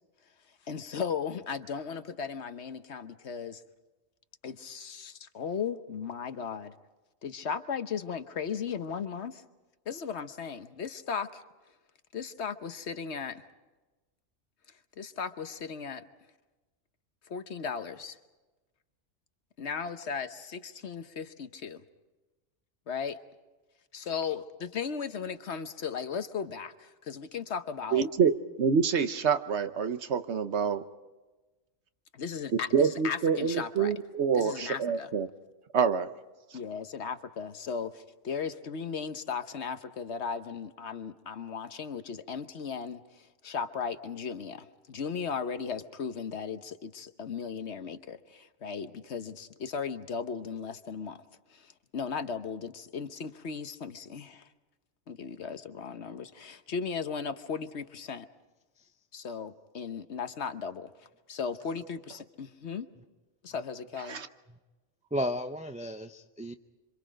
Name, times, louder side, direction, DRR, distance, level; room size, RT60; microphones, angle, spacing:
voice 1, 0.7-3.6 4.4-6.7 7.2-9.4 9.9-11.4 12.1-13.4 15.0-16.0 17.3-18.2 19.6-21.8 22.9-23.2 23.9-28.1 32.1-33.9 34.3-35.1 36.5-43.0 43.4-51.2 51.5-54.5 55.1-58.3 59.1-60.9 61.3-62.9 63.4-64.2, left 6 dB, 65° left, 10 dB, 1.2 m, -36 dB
voice 2, 27.9-28.3 28.6-30.8 32.7-35.3 35.7-36.1 36.5-36.6 64.1-64.3, right 6 dB, 65° right, 10 dB, 1.2 m, -26 dB
voice 3, 65.1-66.5, equal, 10° right, 7 dB, 0.5 m, -33 dB
26.5 x 26.0 x 5.1 m, 1.2 s
omnidirectional pair, 1.3 m